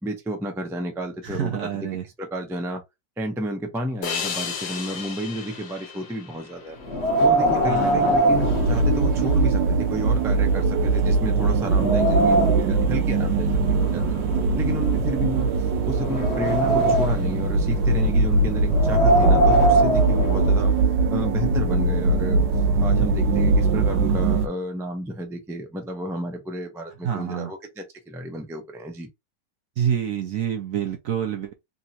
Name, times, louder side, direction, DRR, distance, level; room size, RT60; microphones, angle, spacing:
voice 1, 0.0-1.6 2.2-2.8 3.2-6.8 7.2-9.6 9.9-14.0 14.6-15.5 15.8-20.7 21.1-22.4 22.8-29.1, equal, 5° right, 0.4 m, -31 dB
voice 2, 1.2-2.0 7.6-8.2 27.0-27.5 29.8-31.5, right 9 dB, 65° right, 0.9 m, -27 dB
sound 1, 4.0-7.3, left 6 dB, 65° left, 1.3 m, -33 dB
Wind, 6.8-9.5 9.8-9.9 10.6-10.7 11.2-12.8 13.6-15.2 15.7-17.4 18.6-20.7, right 1 dB, 45° left, 1.1 m, -22 dB
sound 2, 8.3-24.5, right 3 dB, 85° right, 1.3 m, -21 dB
3.6 x 3.0 x 2.9 m
omnidirectional pair, 1.9 m